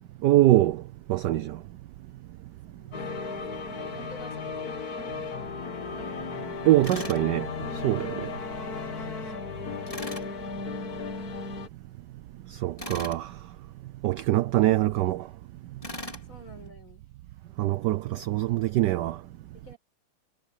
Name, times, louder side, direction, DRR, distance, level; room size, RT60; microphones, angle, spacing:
voice 1, 0.2-0.8 1.1-1.6 6.7-7.5 7.8-8.3 12.6-13.3 14.0-15.3 17.6-19.2, right 15 dB, 70° right, 1.0 m, -23 dB
voice 2, 2.5-3.2 3.7-5.8 8.8-9.5 16.2-17.0 19.5-19.8, left 1 dB, 65° left, 8.1 m, -51 dB
sound 1, 2.9-11.7, left 4 dB, 45° left, 2.1 m, -35 dB
Tools, 6.8-7.2 9.9-10.3 12.8-13.2 15.8-16.3, left 1 dB, 15° left, 3.3 m, -38 dB
omnidirectional pair, 2.3 m